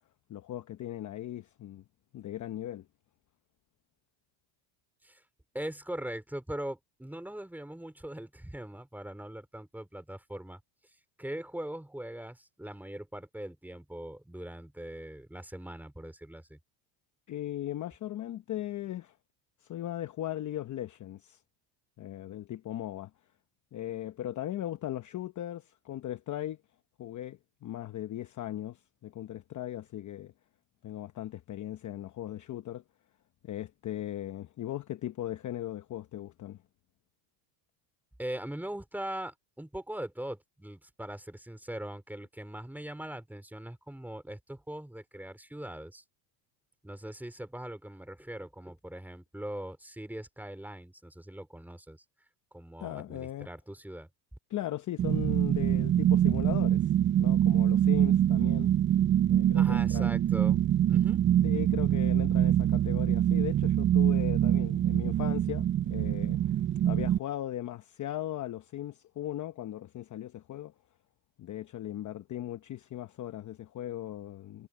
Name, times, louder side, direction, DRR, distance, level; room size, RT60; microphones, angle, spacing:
voice 1, 0.3-1.8 2.1-2.9 17.3-19.2 19.6-21.4 22.0-23.1 23.7-26.6 27.0-30.3 30.8-32.8 33.4-36.6 52.8-53.5 54.5-58.7 59.3-60.2 61.4-70.7 71.4-74.7, left 13 dB, 35° left, 0.9 m, -38 dB
voice 2, 5.5-10.6 11.2-16.6 38.2-46.0 46.8-52.0 52.5-54.1 59.5-61.2, right 1 dB, 5° right, 3.7 m, -41 dB
sound 1, 55.0-67.2, right 11 dB, 30° right, 0.3 m, -25 dB
cardioid pair, 125°, 50 cm